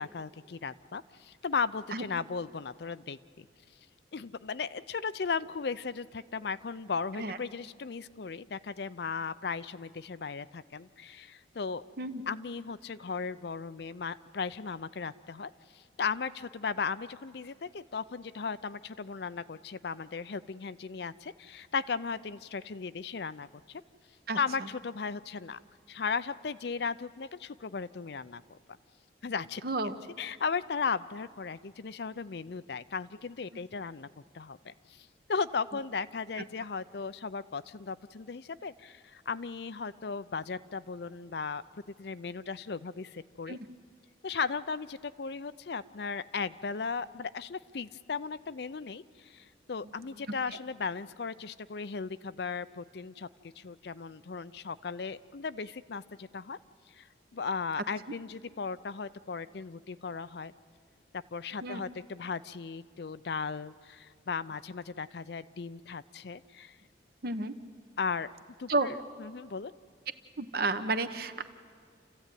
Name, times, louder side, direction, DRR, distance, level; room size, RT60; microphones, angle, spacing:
voice 1, 0.0-3.5 4.1-11.8 12.3-23.8 24.4-25.6 25.9-28.6 29.2-29.6 30.2-34.1 34.3-41.6 42.0-43.6 44.2-53.3 53.6-56.6 56.9-57.1 57.3-60.5 61.1-66.8 68.0-68.3 68.6-69.7, left 5 dB, 60° left, 15 dB, 0.5 m, -36 dB
voice 2, 29.6-29.9 43.5-43.6 61.6-61.8 67.2-67.6 68.7-68.9 70.4-71.4, right 3 dB, 55° right, 10 dB, 1.0 m, -31 dB
28.5 x 14.5 x 9.2 m, 2.2 s
head